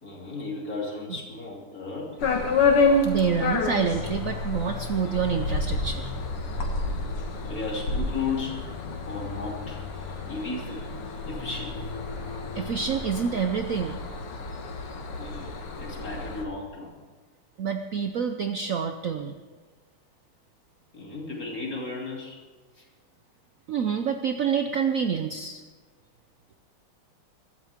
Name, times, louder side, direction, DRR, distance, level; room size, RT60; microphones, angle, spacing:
voice 1, 0.0-2.2 7.4-8.7 9.1-9.8 10.3-10.9 11.3-11.9 15.2-16.9 20.9-22.4 22.7-22.9, left 4 dB, 40° left, -2 dB, 3.5 m, -35 dB
sound 1, 2.2-16.4, left 3 dB, 80° left, 2.6 m, -29 dB
voice 2, 3.0-6.1 12.6-14.0 17.6-19.3 23.7-25.6, right 6 dB, 80° right, 6 dB, 0.7 m, -27 dB
23.5 x 13.5 x 3.6 m, 1.4 s
omnidirectional pair, 2.4 m